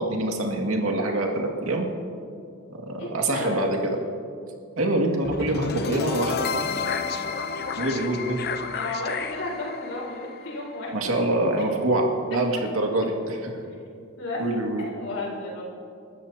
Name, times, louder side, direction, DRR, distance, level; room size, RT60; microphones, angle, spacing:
voice 1, 0.0-1.9 2.8-4.0 4.8-6.4 7.8-8.4 10.9-13.5 14.4-14.9, right 1 dB, 75° right, 1 dB, 2.1 m, -25 dB
voice 2, 3.0-4.0 7.0-7.1 7.5-7.6 8.1-8.2 8.7-11.1 13.7-13.9 14.1-14.4 14.8-15.6, left 2 dB, 85° left, -3 dB, 4.1 m, -33 dB
sound 1, 5.2-11.3, left 5 dB, 50° left, 0.7 m, -31 dB
30.0 x 13.0 x 2.8 m, 2.4 s
head